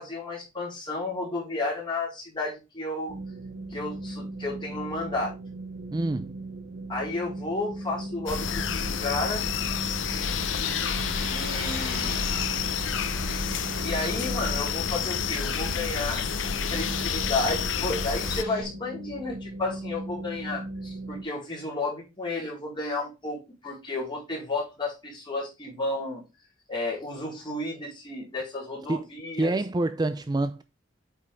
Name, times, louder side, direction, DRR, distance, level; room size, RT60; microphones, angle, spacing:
voice 1, 0.0-3.2 3.7-5.3 6.9-9.4 11.3-12.5 13.8-16.2 16.7-26.2 26.7-29.5, left 2 dB, 25° left, 4.1 m, -32 dB
sound 1, 3.1-21.2, right 2 dB, 60° right, 1.2 m, -38 dB
voice 2, 5.9-6.4 28.9-29.1 29.4-30.6, right 2 dB, 20° right, 0.4 m, -27 dB
sound 2, 8.3-18.4, left 6 dB, 75° left, 0.8 m, -29 dB
Bird, 10.1-18.6, left 4 dB, 55° left, 2.8 m, -40 dB
8.5 x 5.3 x 3.6 m
head